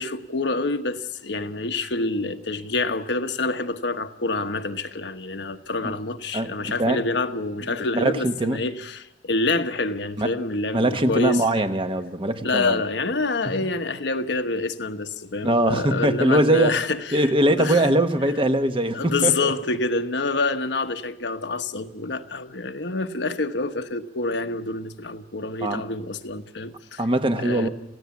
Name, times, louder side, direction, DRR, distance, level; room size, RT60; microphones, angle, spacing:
voice 1, 0.0-11.4 12.4-17.9 18.9-27.0 27.4-27.7, left 3 dB, 80° left, 1.1 m, -27 dB
voice 2, 7.9-8.6 10.2-10.3 10.7-12.8 15.4-16.7 17.1-19.5 25.6-25.8 27.0-27.7, right 1 dB, 30° right, 1.1 m, -21 dB
28.0 x 16.0 x 7.2 m
head